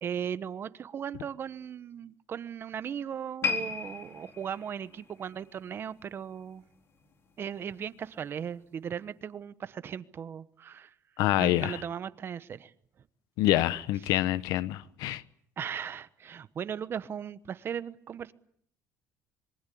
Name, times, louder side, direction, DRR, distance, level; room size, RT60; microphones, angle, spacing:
voice 1, 0.0-6.6 7.4-10.9 11.4-12.7 14.1-14.2 15.6-18.3, right 8 dB, 35° right, 1.1 m, -37 dB
sound 1, 3.4-6.7 7.0-7.3 8.0-8.1, left 6 dB, 40° left, 3.9 m, -36 dB
voice 2, 11.2-11.8 13.4-15.2, left 15 dB, 80° left, 1.1 m, -26 dB
26.5 x 23.5 x 8.6 m
cardioid pair, 140°, 6 cm